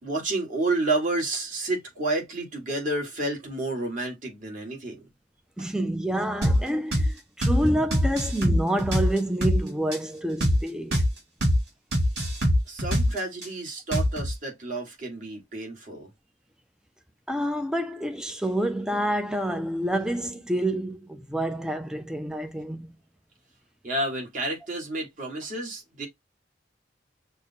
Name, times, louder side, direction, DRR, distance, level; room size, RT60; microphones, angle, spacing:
voice 1, 0.0-5.0 5.6-5.7 12.7-16.1 23.8-26.1, right 2 dB, 45° right, 1.7 m, -30 dB
voice 2, 5.6-11.0 17.3-22.9, right 1 dB, 5° right, 0.5 m, -28 dB
sound 1, 6.4-6.6 6.9-7.1 7.4-7.6 7.9-9.6 9.9-10.0 10.4-10.6 10.9-11.1 11.4-11.6 11.9-13.5 13.9-14.3, equal, 60° right, 2.7 m, -22 dB
6.5 x 2.2 x 2.7 m
head